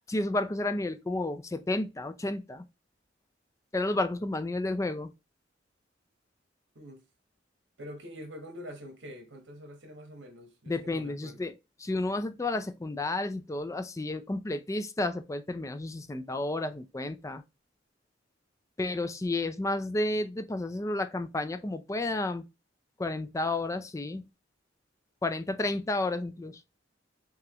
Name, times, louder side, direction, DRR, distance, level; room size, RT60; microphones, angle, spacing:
voice 1, 0.1-2.6 3.7-5.1 10.7-11.5 11.8-17.4 18.8-22.4 23.0-24.2 25.2-26.6, left 2 dB, 15° left, 0.4 m, -31 dB
voice 2, 7.8-11.5, equal, 85° right, 1.4 m, -45 dB
5.8 x 2.4 x 3.0 m
head